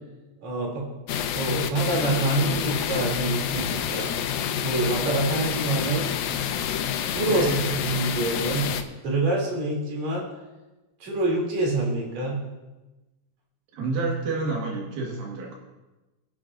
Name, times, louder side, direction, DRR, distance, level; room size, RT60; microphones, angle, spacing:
voice 1, 0.4-0.9 1.3-4.1 4.6-6.1 7.1-8.7 9.0-10.3 11.0-12.4, right 2 dB, 50° right, -3 dB, 3.8 m, -26 dB
sound 1, 1.1-8.8, left 9 dB, 85° left, 2.5 m, -28 dB
voice 2, 7.3-7.7 13.7-15.6, right 3 dB, 85° right, -1 dB, 3.4 m, -29 dB
21.5 x 10.0 x 2.5 m, 1.1 s
omnidirectional pair, 4.1 m